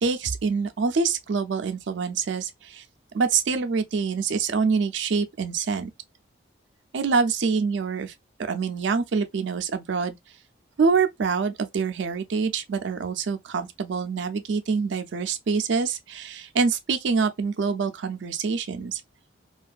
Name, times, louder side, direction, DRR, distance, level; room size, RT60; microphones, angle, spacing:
voice 1, 0.0-2.8 3.1-5.9 6.9-8.1 8.4-10.2 10.8-19.0, right 5 dB, 75° right, 0.4 m, -25 dB
2.5 x 2.3 x 2.3 m
head